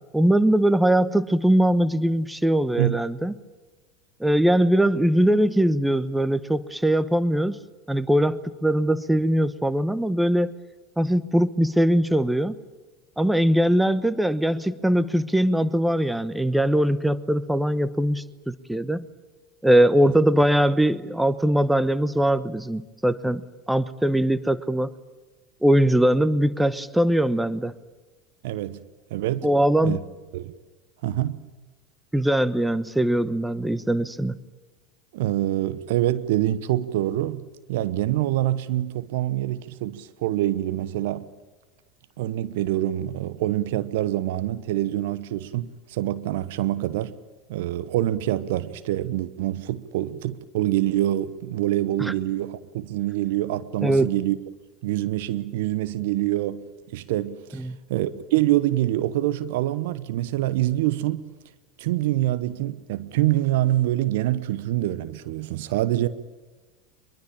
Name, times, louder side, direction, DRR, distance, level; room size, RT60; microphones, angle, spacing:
voice 1, 0.1-3.3 4.2-7.6 7.9-10.5 11.0-12.5 13.2-19.0 19.6-23.4 23.7-24.9 25.6-27.7 29.4-30.0 32.1-34.4 52.0-52.1 53.8-54.1 57.6-57.8, right 1 dB, 5° right, 1.1 m, -21 dB
voice 2, 28.4-28.8 29.1-29.5 29.8-30.0 30.3-30.5 31.0-31.4 35.1-41.2 42.2-47.1 47.5-54.4 54.8-56.6 56.9-57.6 57.9-61.3 61.8-66.1, right 14 dB, 65° right, 1.0 m, -25 dB
23.0 x 22.5 x 8.8 m
figure-of-eight pair, 75°, 0 cm